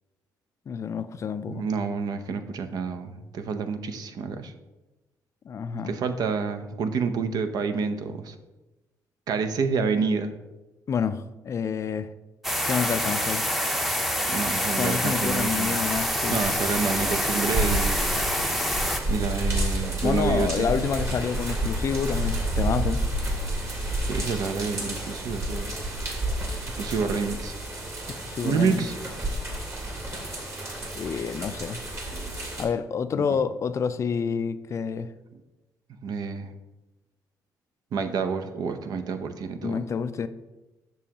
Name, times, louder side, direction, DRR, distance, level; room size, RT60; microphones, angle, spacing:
voice 1, 0.7-1.7 5.5-5.9 10.9-12.1 12.7-13.5 14.8-16.4 20.0-23.0 28.1-28.9 31.0-31.8 32.6-35.1 39.6-40.3, left 6 dB, 45° left, 12 dB, 0.4 m, -28 dB
voice 2, 1.5-4.5 5.7-8.4 9.3-10.3 14.3-15.8 16.3-18.0 19.1-20.7 24.0-25.7 26.8-27.5 28.4-28.9 33.2-33.4 36.0-36.5 37.9-39.8, right 5 dB, 65° right, 8 dB, 0.6 m, -28 dB
sound 1, 12.4-19.0, equal, ahead, 0.7 m, -26 dB
sound 2, 15.2-32.6, right 1 dB, 40° right, 1.9 m, -30 dB
7.1 x 6.0 x 2.9 m, 1.1 s
cardioid pair, 85°, 7 cm